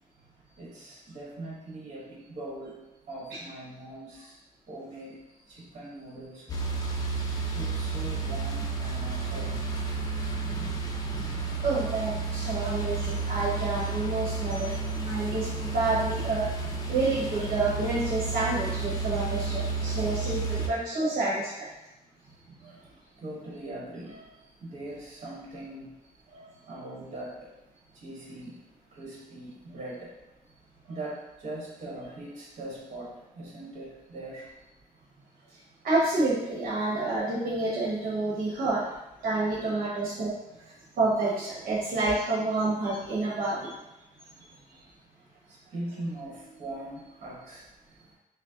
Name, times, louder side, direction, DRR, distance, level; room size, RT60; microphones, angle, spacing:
voice 1, 0.6-2.8 3.1-4.4 4.7-5.2 5.5-6.6 7.1-9.9 11.5-11.7 12.6-12.8 13.4-13.6 14.3-14.9 19.5-20.6 22.6-22.8 23.2-25.9 26.3-27.5 27.9-28.6 28.9-30.2 30.8-34.5 39.2-39.3 39.7-39.8 44.4-44.5 45.5-47.6, right 1 dB, 50° right, -5 dB, 1.3 m, -42 dB
sound 1, 6.5-20.7, right 4 dB, 25° left, 0.4 m, -31 dB
voice 2, 11.6-16.5 16.9-21.7 35.8-38.8 39.2-40.3 41.0-43.7, right 2 dB, 70° right, -7 dB, 1.1 m, -28 dB
5.8 x 2.1 x 2.8 m, 0.95 s
cardioid pair, 175°, 15 cm